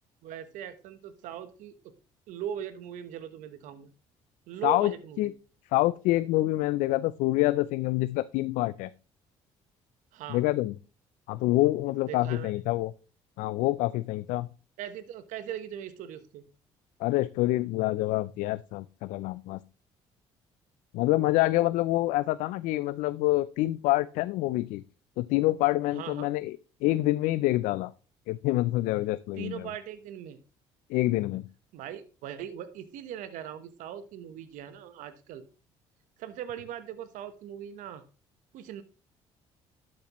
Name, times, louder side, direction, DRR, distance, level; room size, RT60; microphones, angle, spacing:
voice 1, 0.2-1.7 2.3-3.9 4.5-5.3 10.1-10.4 12.0-12.5 14.8-16.4 25.9-26.3 29.4-30.4 31.7-35.4 36.2-38.0 38.5-38.8, right 10 dB, 75° right, 11 dB, 1.1 m, -40 dB
voice 2, 5.7-8.9 10.3-10.7 11.3-12.9 13.4-14.5 17.0-19.6 20.9-24.8 25.2-27.9 28.3-29.7 30.9-31.4, left 17 dB, 75° left, 16 dB, 0.4 m, -26 dB
12.0 x 7.4 x 3.0 m, 0.35 s
supercardioid pair, 65°, 13 cm